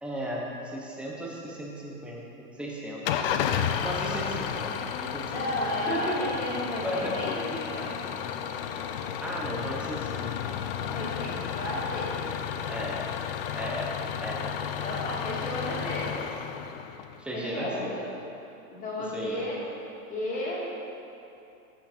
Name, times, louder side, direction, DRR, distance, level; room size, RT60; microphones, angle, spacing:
voice 1, 0.0-3.3 3.8-6.2 6.5-7.1 9.2-10.3 12.7-13.1 13.5-14.4 15.5-15.9 17.2-18.0 19.0-19.4, equal, ahead, -4 dB, 1.0 m, -36 dB
Engine starting / Idling, 3.1-17.2, left 8 dB, 40° left, 0.5 m, -32 dB
voice 2, 5.3-8.1 10.8-12.2 14.8-16.1 17.3-18.0 18.7-19.6 20.1-20.6, left 1 dB, 15° left, -6 dB, 2.3 m, -33 dB
14.0 x 6.0 x 4.5 m, 2.8 s
hypercardioid pair, 145°, 45 cm